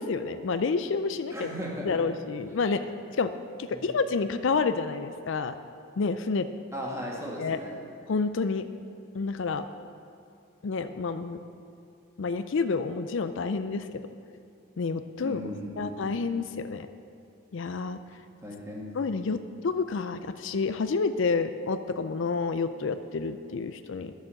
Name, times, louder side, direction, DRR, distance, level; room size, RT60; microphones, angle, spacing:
voice 1, 0.0-1.5 1.9-2.8 3.2-3.3 3.6-5.5 6.0-6.5 7.4-7.6 8.1-8.6 9.1-9.6 10.6-11.4 12.2-14.0 14.8-15.4 15.8-16.9 17.5-18.0 18.9-24.1, left 4 dB, 60° left, 10 dB, 0.4 m, -29 dB
voice 2, 1.3-2.0 3.7-3.9 6.7-7.8 15.2-16.2 18.4-18.9, equal, 15° right, -2 dB, 1.8 m, -37 dB
11.0 x 7.3 x 7.5 m, 2.7 s
head